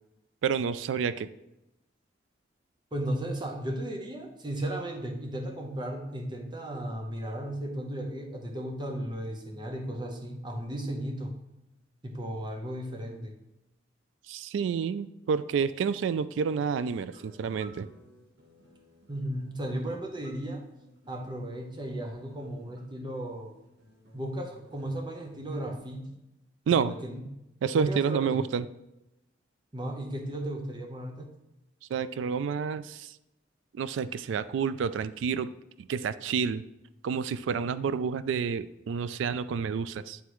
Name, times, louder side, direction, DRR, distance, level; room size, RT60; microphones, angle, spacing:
voice 1, 0.4-1.3 14.3-17.9 26.7-27.0 27.6-28.7 31.9-33.1 33.7-35.5 35.8-36.6 37.0-40.2, right 6 dB, 85° right, 15 dB, 0.3 m, -29 dB
voice 2, 2.9-11.4 12.0-13.3 19.1-20.6 21.1-23.5 24.1-26.2 26.7-27.4 27.7-28.5 29.7-31.3, right 1 dB, 25° right, 2 dB, 0.8 m, -35 dB
sound 1, 16.8-25.8, equal, 65° right, 1.3 m, -57 dB
9.5 x 3.5 x 3.0 m, 0.91 s
head